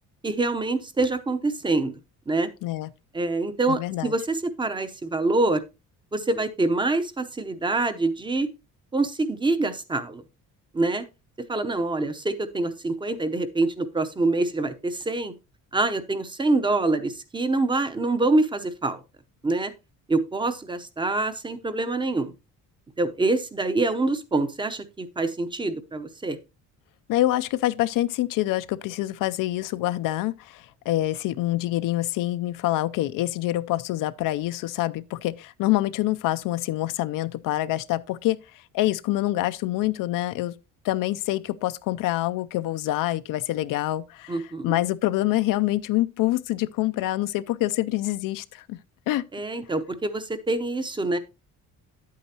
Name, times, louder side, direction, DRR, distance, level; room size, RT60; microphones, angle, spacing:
voice 1, 0.2-1.9 2.3-2.5 3.1-5.6 6.1-8.5 8.9-10.2 10.7-11.1 11.5-15.3 15.7-19.0 19.4-19.7 20.1-22.3 23.0-26.4 44.3-44.8 49.3-51.2, right 2 dB, 15° right, 0.7 m, -25 dB
voice 2, 3.7-4.1 27.1-38.4 38.7-40.5 40.8-44.4 44.6-48.8 49.1-49.3, left 16 dB, 75° left, 0.5 m, -26 dB
9.9 x 8.4 x 2.8 m
cardioid pair, 150°, 33 cm